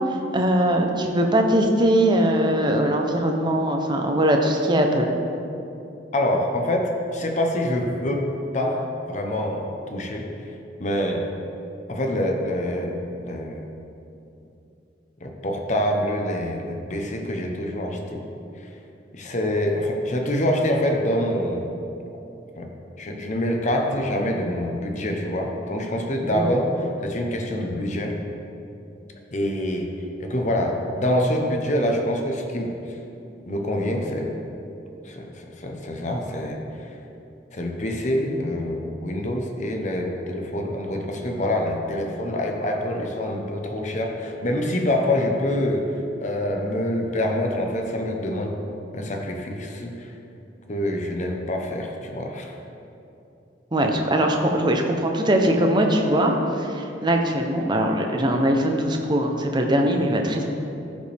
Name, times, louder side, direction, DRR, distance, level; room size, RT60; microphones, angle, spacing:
voice 1, 0.3-5.1 26.3-26.6 53.7-60.4, right 1 dB, 25° right, 2 dB, 0.8 m, -21 dB
voice 2, 6.1-10.3 10.8-11.3 11.9-13.6 15.2-18.3 19.1-21.7 22.6-28.2 29.3-29.9 30.2-32.8 33.5-34.4 35.0-36.9 37.5-45.9 46.2-48.6 48.9-50.1 50.7-52.5, left 1 dB, 40° left, 2 dB, 0.9 m, -26 dB
14.5 x 5.2 x 3.5 m, 2.8 s
head